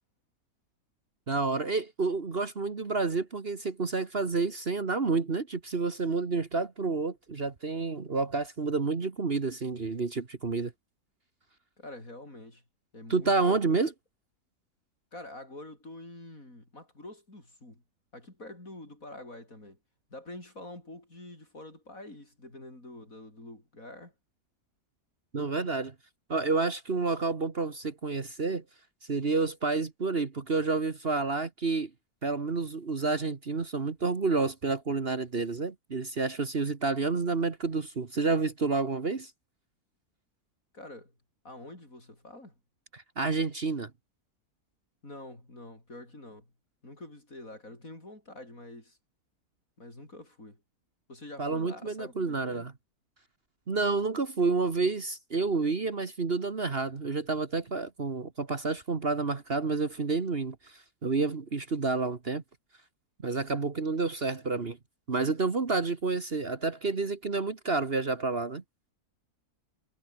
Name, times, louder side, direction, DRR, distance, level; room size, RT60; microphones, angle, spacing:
voice 1, 1.3-10.7 13.1-13.9 25.3-25.9 26.3-28.6 29.1-31.9 32.2-39.3 42.9-43.9 51.4-52.7 53.7-62.4 63.2-64.8 65.1-68.6, right 4 dB, 40° right, 1.7 m, -29 dB
voice 2, 11.8-12.6 12.9-13.8 15.1-17.8 18.1-19.8 20.1-24.1 40.7-41.1 41.4-42.5 45.0-46.5 46.8-49.0 49.8-50.6 51.1-52.7, left 1 dB, 60° left, 8.0 m, -46 dB
omnidirectional pair, 1.6 m